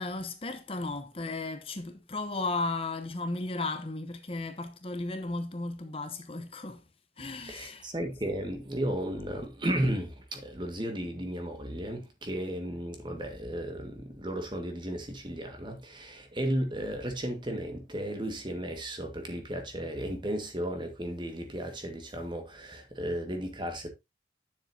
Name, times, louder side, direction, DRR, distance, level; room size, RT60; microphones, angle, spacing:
voice 1, 0.0-6.8 7.2-7.9, left 3 dB, 30° left, 0.9 m, -35 dB
voice 2, 7.5-23.9, right 1 dB, 25° right, 1.6 m, -34 dB
9.9 x 7.1 x 2.7 m
head